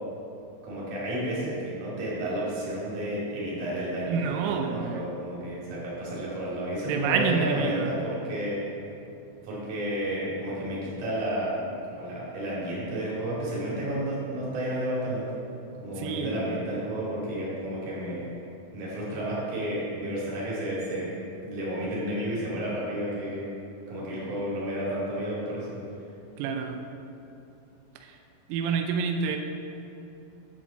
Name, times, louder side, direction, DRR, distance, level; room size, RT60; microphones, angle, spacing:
voice 1, 0.6-8.6 9.4-15.2 15.8-18.3 18.7-21.1 21.4-23.5 23.9-25.8, right 1 dB, 50° right, -7 dB, 3.8 m, -31 dB
voice 2, 4.1-5.1 6.9-8.0 16.0-16.4 26.4-26.8 28.5-29.4, right 6 dB, 90° right, 4 dB, 3.3 m, -28 dB
10.0 x 4.3 x 7.3 m, 2.8 s
omnidirectional pair, 5.8 m